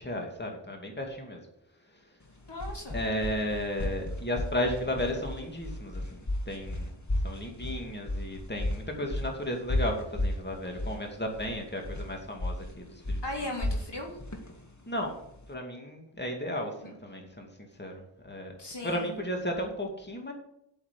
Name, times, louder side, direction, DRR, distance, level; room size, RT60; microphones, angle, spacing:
voice 1, 0.0-1.4 2.9-6.9 7.2-13.5 14.9-15.2 15.5-17.5 17.8-18.5 18.8-20.3, left 1 dB, 25° left, 1 dB, 2.5 m, -34 dB
sound 1, 2.3-15.5, left 1 dB, 40° left, 2.1 m, -34 dB
voice 2, 2.5-3.0 13.2-14.1 16.8-16.9 18.6-19.1, left 1 dB, 70° left, 0 dB, 3.2 m, -37 dB
8.8 x 7.1 x 8.4 m, 0.78 s
wide cardioid pair, 40°, 43 cm